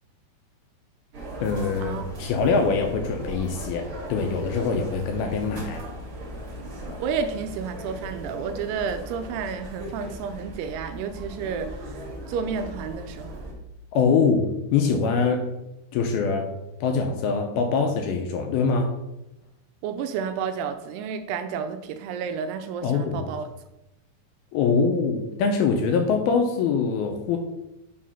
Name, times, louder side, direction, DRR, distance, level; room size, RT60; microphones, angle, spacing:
sound 1, 1.1-13.5, equal, 55° right, 1.5 m, -38 dB
voice 1, 1.4-5.8 13.9-15.5 15.9-16.5 16.8-19.0 22.8-23.3 24.5-27.4, left 5 dB, 80° left, 3 dB, 2.3 m, -23 dB
voice 2, 7.0-11.9 12.3-13.4 19.8-23.4, right 6 dB, 80° right, 9 dB, 2.5 m, -31 dB
6.0 x 4.9 x 5.6 m, 0.92 s
omnidirectional pair, 4.8 m